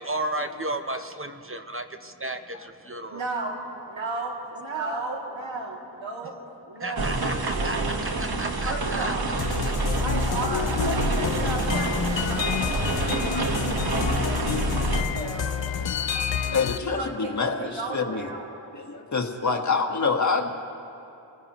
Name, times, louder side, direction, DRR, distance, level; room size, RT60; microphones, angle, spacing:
voice 1, 0.0-3.3 6.8-9.2 9.6-9.7, right 1 dB, 30° right, 7 dB, 0.7 m, -33 dB
voice 2, 3.0-3.6 3.9-6.3 6.7-7.9 8.6-9.2 10.0-15.4 15.8-15.9 16.8-17.3 17.6-18.4, right 2 dB, 85° right, -2 dB, 2.6 m, -34 dB
sound 1, 7.0-15.0, right 2 dB, 55° right, 1.4 m, -27 dB
sound 2, 9.4-16.8, left 7 dB, 70° left, 0.7 m, -29 dB
voice 3, 15.8-16.2 16.5-18.3 18.7-20.5, left 4 dB, 40° left, 3 dB, 1.5 m, -27 dB
27.5 x 16.0 x 3.0 m, 2.7 s
wide cardioid pair, 55°, 45 cm